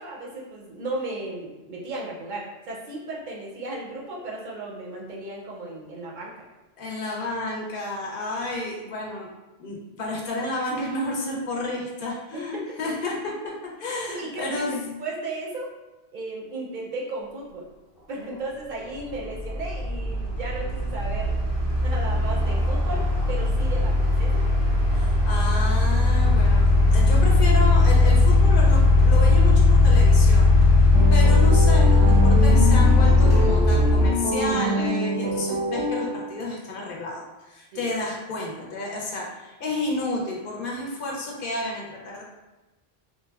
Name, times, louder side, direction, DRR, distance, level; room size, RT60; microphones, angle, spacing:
voice 1, 0.0-6.4 12.3-12.9 14.1-15.7 16.1-17.7 18.1-21.4 21.8-24.3 35.3-35.5 37.7-37.9, right 2 dB, 60° right, -3 dB, 0.6 m, -35 dB
voice 2, 6.8-9.3 9.6-13.5 13.8-15.0 24.9-30.5 31.1-42.2, left 2 dB, 60° left, -2 dB, 0.7 m, -31 dB
sound 1, 18.3-18.4 19.0-34.1, left 2 dB, 25° left, 0.4 m, -18 dB
sound 2, 30.9-36.4, equal, 85° right, 0.9 m, -26 dB
3.2 x 2.1 x 2.2 m, 1.1 s
omnidirectional pair, 1.1 m